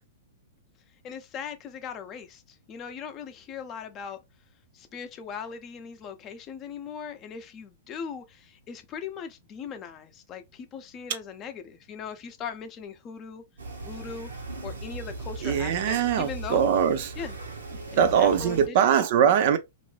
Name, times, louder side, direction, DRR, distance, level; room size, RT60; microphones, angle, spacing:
voice 1, 1.0-4.2 4.7-13.4 13.8-14.3 14.6-16.7 17.2-17.3 17.9-19.0, left 6 dB, 30° left, 0.5 m, -39 dB
sound 1, 13.6-18.7, right 2 dB, 85° right, 0.9 m, -38 dB
voice 2, 15.4-17.0 17.9-19.6, right 8 dB, 55° right, 0.5 m, -22 dB
2.5 x 2.1 x 3.2 m
hypercardioid pair, 115°, 0 cm